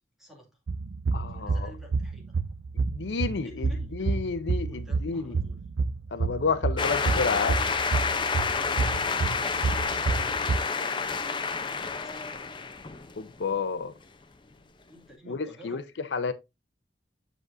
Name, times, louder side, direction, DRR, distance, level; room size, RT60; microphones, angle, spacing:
voice 1, 0.2-0.6 1.3-2.3 3.4-3.9 4.7-5.6 8.5-12.5 14.9-15.8, equal, ahead, 2.2 m, -51 dB
sound 1, 0.7-10.6, right 4 dB, 75° right, 0.5 m, -29 dB
voice 2, 1.1-1.7 2.8-5.4 6.1-7.6 13.2-13.9 15.3-16.3, left 5 dB, 75° left, 0.5 m, -30 dB
sound 2, 6.8-13.6, left 5 dB, 25° left, 0.6 m, -29 dB
7.5 x 6.2 x 2.5 m
head